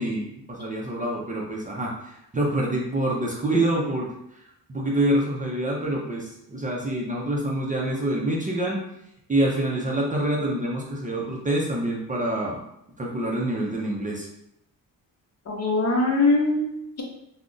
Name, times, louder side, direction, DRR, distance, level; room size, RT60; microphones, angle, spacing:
voice 1, 0.0-4.2 4.7-8.8 9.3-12.6 13.0-14.3, right 1 dB, 20° right, -3 dB, 0.4 m, -26 dB
voice 2, 15.5-17.0, left 2 dB, 45° left, 0 dB, 0.7 m, -22 dB
2.4 x 2.0 x 3.7 m, 0.80 s
cardioid pair, 105°, 36 cm